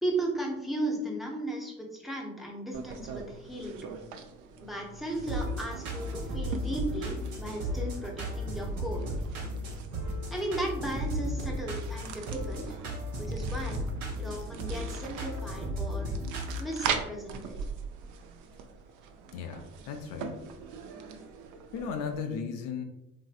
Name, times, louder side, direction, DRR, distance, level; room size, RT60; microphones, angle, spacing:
voice 1, 0.0-3.8 4.6-9.1 10.3-12.8 13.2-13.8 14.2-16.1 16.6-17.6, right 1 dB, ahead, 0 dB, 0.7 m, -35 dB
sound 1, 2.7-22.2, right 6 dB, 55° right, 0.5 m, -42 dB
sound 2, 5.1-16.6, equal, 85° right, 0.8 m, -35 dB
voice 2, 19.3-20.4 21.7-22.8, left 6 dB, 60° left, 5 dB, 0.5 m, -36 dB
3.0 x 2.7 x 2.4 m, 0.90 s
hypercardioid pair, 65°, 38 cm